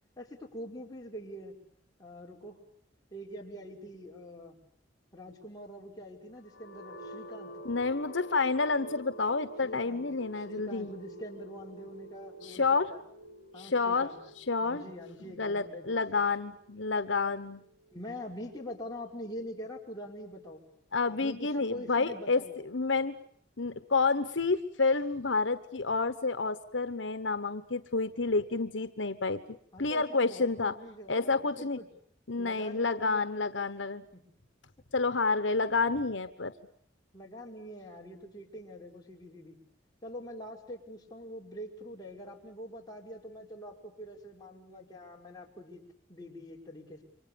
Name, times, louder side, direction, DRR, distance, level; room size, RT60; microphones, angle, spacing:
voice 1, 0.2-1.6 2.0-2.6 3.1-4.6 5.1-7.5 9.6-10.0 10.4-13.0 13.5-14.2 14.6-16.3 17.9-20.6 21.0-22.5 29.7-31.9 32.4-33.3 34.1-34.3 37.1-39.6 40.0-47.0, equal, 20° left, -2 dB, 5.4 m, -44 dB
sound 1, 6.4-20.3, equal, 60° left, 5.1 m, -49 dB
voice 2, 7.6-10.9 12.4-12.9 13.6-14.1 14.5-14.8 15.4-17.6 20.9-23.1 23.6-29.4 29.8-30.7 31.1-31.8 32.3-34.0 34.9-36.5, left 4 dB, 85° left, 10 dB, 1.2 m, -29 dB
29.0 x 25.0 x 7.1 m, 0.64 s
head